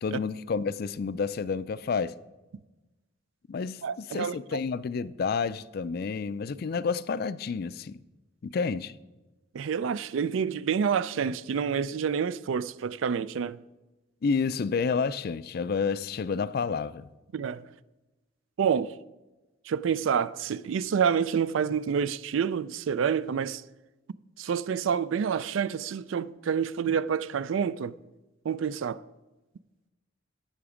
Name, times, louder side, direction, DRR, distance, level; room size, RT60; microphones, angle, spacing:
voice 1, 0.0-2.1 3.5-8.0 8.4-8.9 14.2-17.1, left 5 dB, 50° left, 0.4 m, -30 dB
voice 2, 3.8-4.6 9.5-13.6 17.3-17.6 18.6-18.9 19.7-23.6 24.4-28.0 28.4-29.0, right 7 dB, 75° right, 0.4 m, -28 dB
16.5 x 5.9 x 5.0 m
head